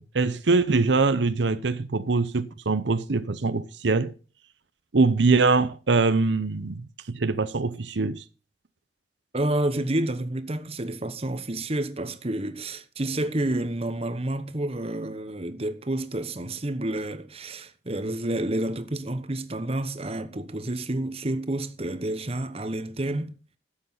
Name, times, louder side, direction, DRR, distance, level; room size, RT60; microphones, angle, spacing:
voice 1, 0.0-4.1 4.9-8.2, right 3 dB, 85° right, 0.8 m, -23 dB
voice 2, 9.3-23.3, right 1 dB, 35° right, 1.1 m, -29 dB
12.0 x 7.9 x 5.7 m
head